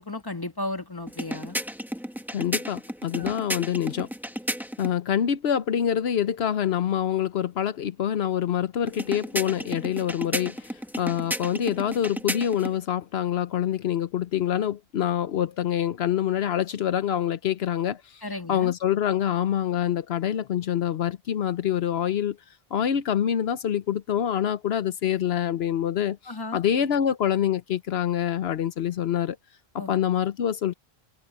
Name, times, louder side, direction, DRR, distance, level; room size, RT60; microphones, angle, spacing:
voice 1, 0.0-1.6 3.2-3.4 18.2-18.7 26.3-26.6 29.8-29.9, left 2 dB, 20° left, 1.9 m, -34 dB
sound 1, 1.1-5.0 8.9-12.8, equal, ahead, 1.2 m, -33 dB
voice 2, 2.3-4.1 4.8-18.2 18.5-22.4 22.7-29.4 29.7-30.7, left 10 dB, 80° left, 1.0 m, -26 dB
omnidirectional pair, 1.0 m